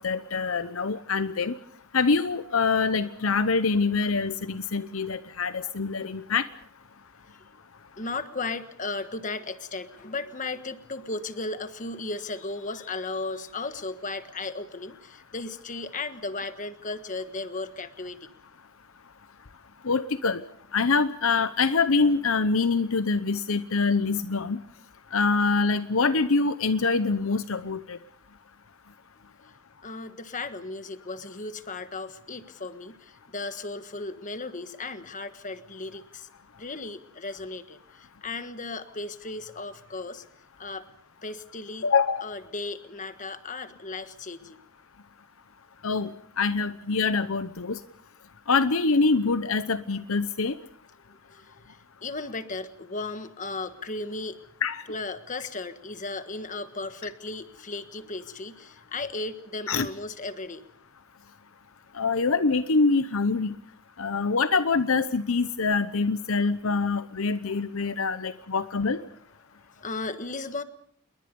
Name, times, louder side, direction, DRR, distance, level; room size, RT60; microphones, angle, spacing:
voice 1, 0.0-1.6 1.9-6.4 19.8-20.4 20.7-24.6 25.1-28.0 41.8-42.3 45.8-46.1 46.4-47.8 48.5-50.6 54.6-54.8 59.7-59.9 61.9-63.5 64.0-69.0, left 4 dB, 65° left, 12 dB, 0.9 m, -25 dB
voice 2, 8.0-18.2 29.2-29.5 29.8-36.3 36.6-40.2 40.6-40.9 41.2-41.9 42.2-44.6 51.3-54.4 54.9-60.6 69.8-70.6, left 3 dB, 35° left, 10 dB, 1.4 m, -36 dB
28.5 x 22.0 x 5.4 m, 0.64 s
head